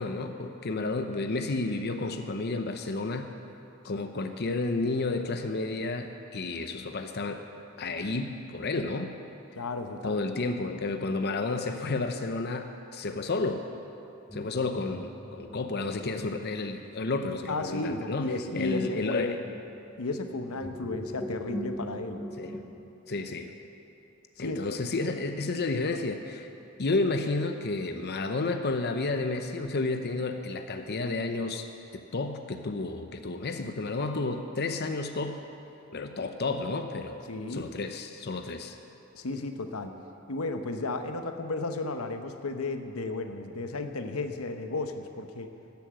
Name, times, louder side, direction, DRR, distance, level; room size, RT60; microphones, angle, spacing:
voice 1, 0.0-3.3 3.8-7.4 7.8-9.1 10.0-13.6 14.3-18.3 18.5-19.4 22.4-22.6 23.1-23.5 24.4-26.5 26.8-31.7 32.1-35.4 35.9-38.8, left 3 dB, 50° left, 6 dB, 0.7 m, -31 dB
voice 2, 3.9-4.2 9.6-10.2 17.5-19.4 20.0-22.2 24.4-24.6 37.3-37.7 39.1-40.0 40.3-45.5, left 2 dB, 90° left, 7 dB, 0.9 m, -33 dB
sound 1, 14.3-22.8, equal, 5° left, 1.0 m, -43 dB
12.5 x 10.5 x 7.6 m, 2.8 s
head